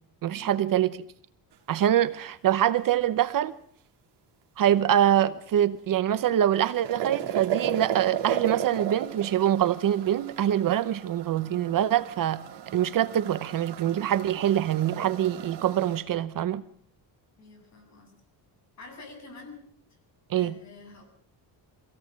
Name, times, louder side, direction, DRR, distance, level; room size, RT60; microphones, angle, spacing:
voice 1, 0.2-1.0 1.7-3.5 4.6-16.6 20.3-20.5, right 11 dB, 50° right, 0.8 m, -24 dB
sound 1, 6.2-16.0, right 10 dB, 65° right, 2.4 m, -35 dB
voice 2, 17.4-18.1 18.8-19.6 20.3-21.0, left 3 dB, 40° left, 7.8 m, -47 dB
24.5 x 17.5 x 7.5 m
cardioid pair, 170°, 43 cm